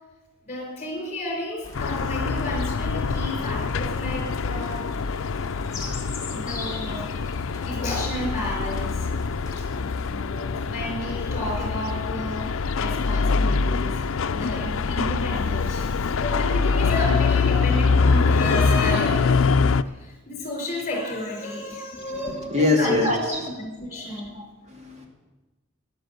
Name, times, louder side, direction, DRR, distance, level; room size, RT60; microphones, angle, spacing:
voice 1, 0.4-4.8 6.3-7.1 7.5-9.1 9.6-9.7 10.1-19.3 19.9-24.4, left 1 dB, 35° left, 1 dB, 4.7 m, -32 dB
sound 1, 1.6-10.1, left 2 dB, 15° left, 2.3 m, -40 dB
sound 2, 1.7-19.8, left 4 dB, 80° left, 0.5 m, -24 dB
voice 2, 21.9-23.5 24.3-25.1, left 2 dB, 30° right, 1 dB, 2.7 m, -25 dB
13.0 x 11.0 x 8.1 m, 1.1 s
head